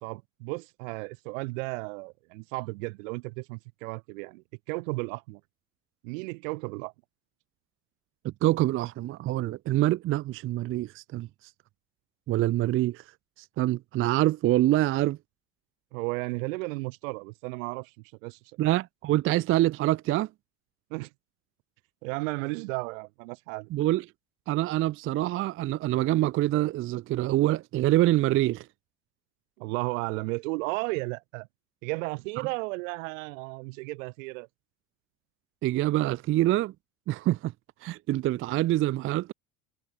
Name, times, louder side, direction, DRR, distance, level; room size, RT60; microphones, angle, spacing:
voice 1, 0.0-5.4 6.0-6.9 15.9-17.9 18.2-18.4 20.9-21.1 22.0-23.7 29.6-31.5 31.8-34.5, right 27 dB, 70° right, 1.2 m, -34 dB
voice 2, 8.2-11.3 12.3-13.0 13.6-15.2 18.6-20.3 23.7-24.0 24.5-28.7 35.6-36.7 37.1-37.5 37.8-39.3, right 15 dB, 35° right, 0.4 m, -25 dB
hypercardioid pair, 80°, 41 cm